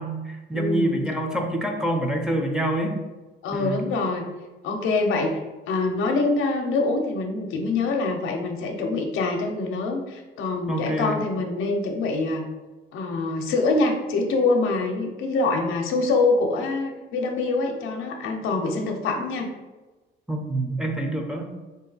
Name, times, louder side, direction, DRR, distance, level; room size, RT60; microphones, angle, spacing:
voice 1, 0.0-3.0 3.5-3.8 10.7-11.2 20.3-21.5, right 1 dB, 5° right, 1 dB, 0.6 m, -26 dB
voice 2, 0.5-1.0 3.4-4.2 4.6-5.4 5.7-12.4 12.9-19.5, left 3 dB, 85° left, 2 dB, 0.6 m, -25 dB
3.1 x 2.7 x 3.8 m, 1.2 s
cardioid pair, 90°, 20 cm